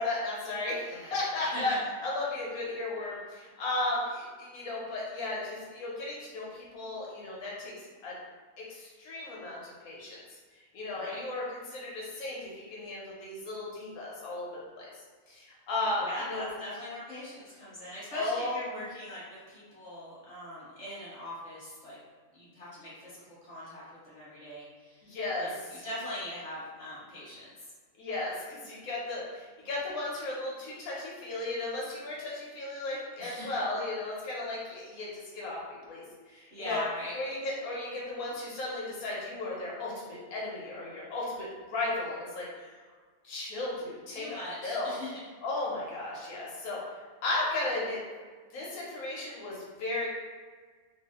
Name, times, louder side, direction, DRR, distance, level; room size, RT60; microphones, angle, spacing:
voice 1, 0.0-1.7 2.0-7.7 8.0-8.2 8.6-10.2 10.7-14.9 15.3-16.4 18.1-18.8 25.0-25.5 28.0-36.8 37.1-42.7 43.2-44.4 44.6-44.9 45.4-46.8 47.2-48.0 48.5-50.1, left 2 dB, 85° left, -5 dB, 1.2 m, -35 dB
voice 2, 16.0-22.0 22.3-25.1 25.4-27.7 33.2-33.6 36.5-37.2 44.1-45.1, left 1 dB, 25° left, -9 dB, 1.3 m, -41 dB
3.2 x 2.3 x 2.8 m, 1.5 s
omnidirectional pair, 1.5 m